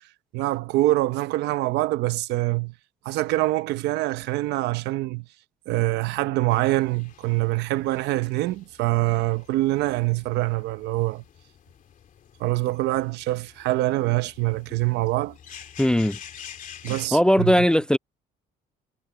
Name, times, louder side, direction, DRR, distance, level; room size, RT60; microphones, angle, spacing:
voice 1, 0.3-2.7 3.0-5.3 5.7-11.2 12.4-15.4 16.8-17.5, right 18 dB, 85° right, 1.0 m, -25 dB
sound 1, 6.5-17.1, left 9 dB, 50° left, 2.8 m, -48 dB
voice 2, 15.8-16.2 17.1-18.0, equal, 5° left, 0.3 m, -19 dB
cardioid pair, 110°, 17 cm